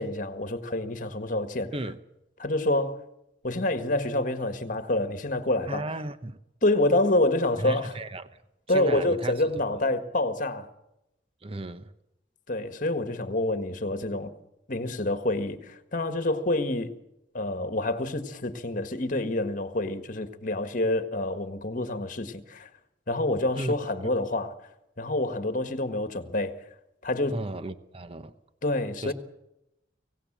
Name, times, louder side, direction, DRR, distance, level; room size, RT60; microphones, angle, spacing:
voice 1, 0.0-1.7 2.4-3.0 3.4-5.8 6.6-8.0 8.7-10.7 12.5-14.3 14.7-16.9 17.3-22.7 23.1-24.5 25.0-26.7 27.0-27.4 28.6-29.1, left 2 dB, 45° left, 1.7 m, -27 dB
voice 2, 5.7-6.4 7.6-8.3 8.7-9.4 9.7-9.8 11.4-11.9 23.6-23.7 27.3-28.3 29.0-29.1, right 1 dB, 30° right, 0.9 m, -34 dB
24.5 x 17.0 x 7.5 m
head